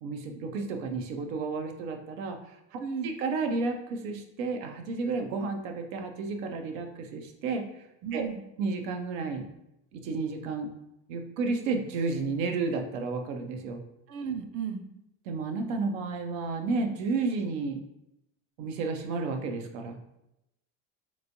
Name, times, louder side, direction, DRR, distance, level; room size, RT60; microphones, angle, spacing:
voice 1, 0.0-7.9 8.1-8.2 8.6-9.5 9.9-10.7 11.1-13.8 15.3-17.8 18.6-20.0, right 4 dB, 85° right, 4 dB, 0.6 m, -32 dB
voice 2, 2.8-3.1 8.0-8.4 14.1-14.8, right 6 dB, 35° right, 6 dB, 0.4 m, -34 dB
3.4 x 3.1 x 2.6 m, 0.85 s
supercardioid pair, 100°, 38 cm